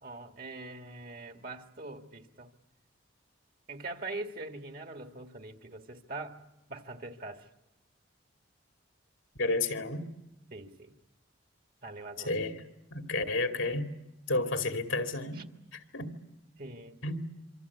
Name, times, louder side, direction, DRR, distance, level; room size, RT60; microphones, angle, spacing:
voice 1, 0.0-2.5 3.7-6.4 6.7-7.5 10.5-10.9 11.8-12.3 13.6-13.7 14.3-14.4 15.3-15.5 16.6-17.0, right 2 dB, 45° right, 6 dB, 1.9 m, -43 dB
voice 2, 9.4-10.1 12.2-12.6 12.9-13.9 14.3-15.4 15.9-16.1 17.0-17.3, left 2 dB, 80° left, 5 dB, 2.4 m, -31 dB
26.0 x 25.5 x 8.4 m, 0.97 s
head